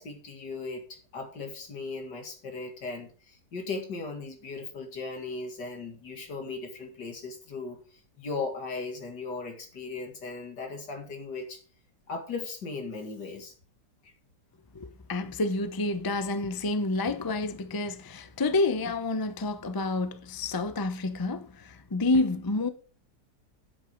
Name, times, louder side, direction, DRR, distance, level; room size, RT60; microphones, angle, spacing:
voice 1, 0.0-7.8 8.2-11.6 12.1-13.5 14.0-14.1, left 3 dB, 75° left, 2.8 m, -37 dB
voice 2, 14.7-22.7, left 2 dB, 25° left, 0.4 m, -29 dB
9.3 x 8.3 x 5.2 m
omnidirectional pair, 1.8 m